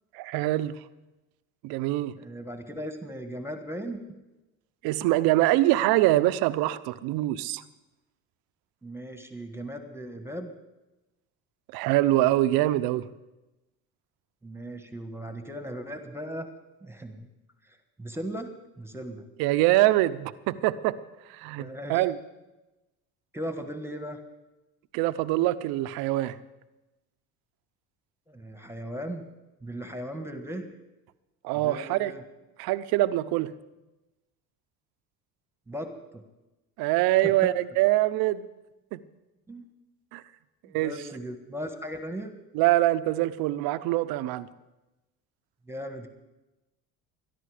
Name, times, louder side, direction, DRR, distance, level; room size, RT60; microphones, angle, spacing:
voice 1, 0.1-0.8 1.6-2.1 4.8-7.6 11.7-13.1 19.4-21.0 21.3-22.2 24.9-26.4 31.4-32.1 32.6-33.5 36.8-38.5 38.9-39.0 40.1-40.2 40.7-40.9 42.5-44.5, right 16 dB, 75° right, 14 dB, 0.8 m, -24 dB
voice 2, 2.2-4.2 8.8-10.5 14.4-16.5 16.8-17.3 17.7-18.5 18.8-19.2 21.6-22.0 23.3-24.2 28.3-29.2 29.6-30.7 31.5-32.2 35.7-36.2 37.4-37.5 39.5-39.6 40.6-42.3 45.7-46.1, equal, 5° right, 7 dB, 1.6 m, -37 dB
22.0 x 11.0 x 5.1 m, 1.0 s
supercardioid pair, 85°, 37 cm